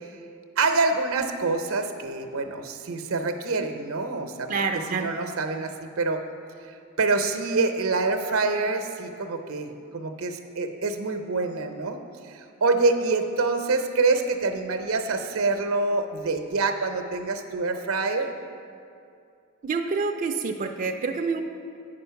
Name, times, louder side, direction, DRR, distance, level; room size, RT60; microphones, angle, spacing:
voice 1, 0.6-4.5 4.9-6.2 6.7-12.0 12.3-18.3, right 3 dB, 80° right, 6 dB, 0.6 m, -26 dB
voice 2, 4.5-5.1 19.6-21.4, right 4 dB, 40° right, 3 dB, 0.4 m, -27 dB
8.7 x 5.3 x 5.7 m, 2.4 s
head